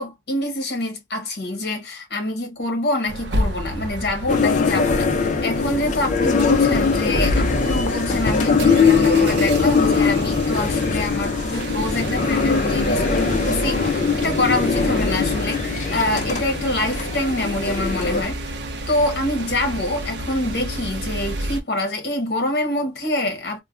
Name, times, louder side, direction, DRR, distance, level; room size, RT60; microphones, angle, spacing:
voice 1, 0.0-18.6 18.9-23.6, left 1 dB, 55° left, 0.8 m, -25 dB
sound 1, 3.1-21.6, equal, 65° right, 0.6 m, -29 dB
sound 2, 4.3-18.2, left 5 dB, 40° left, 0.4 m, -21 dB
3.1 x 2.1 x 2.4 m
head